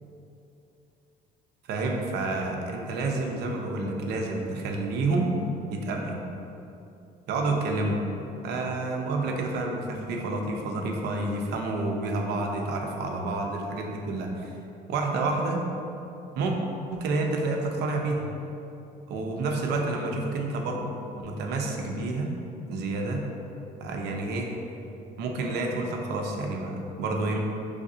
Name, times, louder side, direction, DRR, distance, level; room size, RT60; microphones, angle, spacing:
voice 1, 1.7-5.3 5.7-6.2 7.3-8.0 8.4-14.6 14.9-15.6 16.3-16.6 16.9-18.2 19.1-20.9 21.2-22.3 22.7-23.2 23.8-24.5 25.2-27.4, right 2 dB, 80° right, 1 dB, 0.6 m, -29 dB
4.8 x 3.4 x 2.7 m, 2.8 s
cardioid pair, 110°, 17 cm